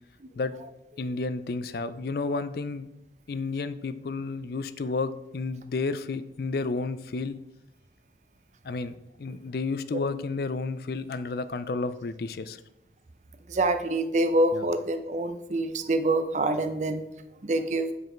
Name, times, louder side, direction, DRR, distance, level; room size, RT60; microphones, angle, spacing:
voice 1, 1.0-2.9 3.3-7.4 8.6-12.6 14.5-14.7, left 3 dB, 55° left, 13 dB, 0.4 m, -31 dB
voice 2, 13.5-17.0 17.4-17.9, right 2 dB, 40° right, 9 dB, 0.6 m, -26 dB
7.9 x 4.9 x 4.4 m, 0.92 s
head